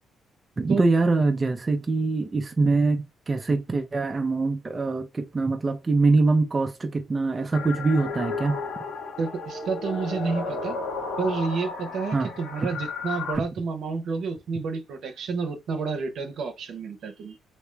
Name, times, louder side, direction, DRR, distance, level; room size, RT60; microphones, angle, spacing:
voice 1, 0.6-8.6 12.1-12.3 12.6-12.7, right 3 dB, 25° right, 0.6 m, -23 dB
sound 1, 7.5-13.4, left 4 dB, 80° left, 1.5 m, -33 dB
voice 2, 9.2-10.8 11.2-17.4, right 4 dB, 70° right, 0.9 m, -30 dB
3.2 x 2.9 x 3.3 m
cardioid pair, 90°, 0 cm